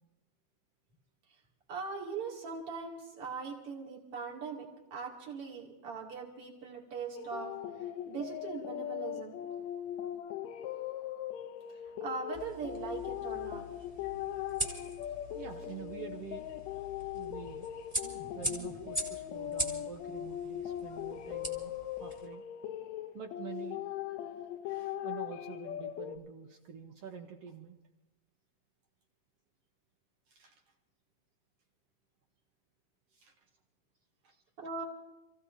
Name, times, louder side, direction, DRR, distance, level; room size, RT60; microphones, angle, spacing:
voice 1, 1.7-7.5 8.1-9.4 12.0-13.6 14.0-14.2 18.0-18.7 34.6-34.8, right 5 dB, 45° right, -2 dB, 3.2 m, -41 dB
sound 1, 7.1-26.2, left 11 dB, 80° left, 1.6 m, -40 dB
sound 2, 12.3-22.3, equal, 10° right, 2.2 m, -42 dB
voice 2, 15.3-16.5 17.1-17.7 18.3-22.4 23.1-23.9 24.6-27.8 30.3-30.6 33.1-33.4 34.2-34.3, right 7 dB, 70° right, 4 dB, 1.4 m, -47 dB
29.0 x 16.0 x 2.7 m, 1.1 s
omnidirectional pair, 3.9 m